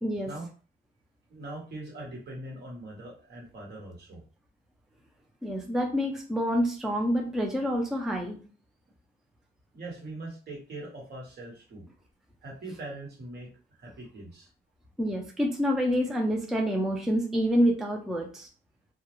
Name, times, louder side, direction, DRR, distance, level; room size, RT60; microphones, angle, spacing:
voice 1, 1.3-4.2 9.7-11.8 12.4-14.5, right 2 dB, 55° right, -2 dB, 1.2 m, -41 dB
voice 2, 5.4-8.4 15.0-18.5, equal, ahead, 1 dB, 0.4 m, -27 dB
2.3 x 2.0 x 3.0 m, 0.37 s
cardioid pair, 90°, 20 cm